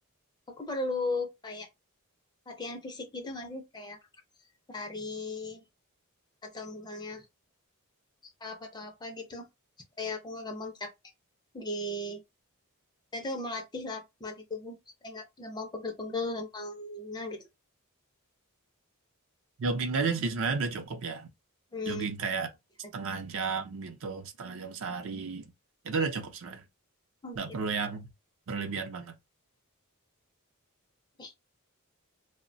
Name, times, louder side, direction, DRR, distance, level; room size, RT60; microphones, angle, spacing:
voice 1, 0.5-1.7 2.5-4.0 4.7-5.6 6.4-7.3 8.4-9.5 10.0-10.9 11.5-12.2 13.1-14.8 15.0-17.4 21.7-22.0 27.2-27.5 31.2-31.3, left 2 dB, 20° left, 0.4 m, -37 dB
voice 2, 19.6-21.3 21.9-22.5 22.9-25.5 25.8-26.6 27.3-28.1 28.5-29.2, right 4 dB, 60° right, 0.5 m, -32 dB
2.8 x 2.1 x 2.5 m
head